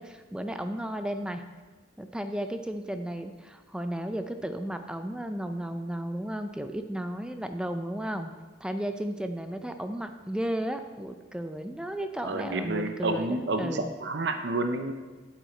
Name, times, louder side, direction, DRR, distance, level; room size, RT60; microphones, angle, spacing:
voice 1, 0.0-1.4 2.0-8.3 8.6-13.9, right 1 dB, 5° right, 7 dB, 0.5 m, -34 dB
voice 2, 12.2-14.9, right 2 dB, 60° right, 7 dB, 0.6 m, -30 dB
8.7 x 8.2 x 4.4 m, 1.3 s
head